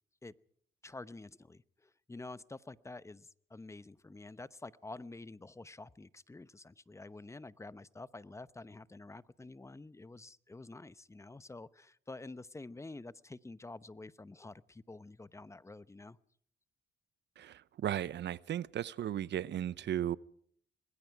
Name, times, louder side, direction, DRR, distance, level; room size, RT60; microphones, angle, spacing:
voice 1, 0.8-16.2, left 2 dB, 15° left, 0.9 m, -49 dB
voice 2, 17.4-20.2, right 11 dB, 60° right, 0.8 m, -35 dB
26.5 x 20.5 x 4.8 m
cardioid pair, 90°, 20 cm